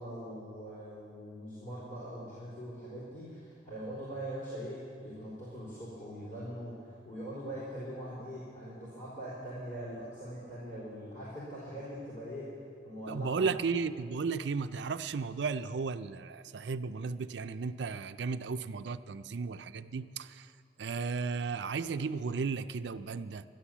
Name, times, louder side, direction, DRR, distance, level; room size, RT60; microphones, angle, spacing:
voice 1, 0.0-12.6 12.8-13.5, equal, 50° left, -11 dB, 3.9 m, -42 dB
voice 2, 13.1-20.5 20.8-23.4, right 5 dB, 85° right, 11 dB, 0.5 m, -34 dB
12.0 x 11.5 x 7.3 m, 2.3 s
head